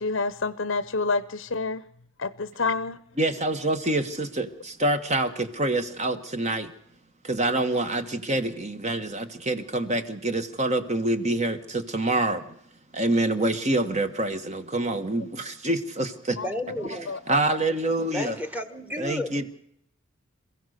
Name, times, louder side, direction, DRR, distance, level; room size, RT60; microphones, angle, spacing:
voice 1, 0.0-1.8 2.2-3.0 13.1-13.2 16.3-17.4, left 3 dB, 60° left, 0.8 m, -29 dB
voice 2, 3.2-6.7 7.2-12.6 12.9-16.4 17.3-18.4 19.0-19.5, right 2 dB, 30° right, 1.6 m, -26 dB
voice 3, 16.4-17.2 18.1-19.5, left 1 dB, 5° right, 1.6 m, -33 dB
27.5 x 15.5 x 6.7 m
head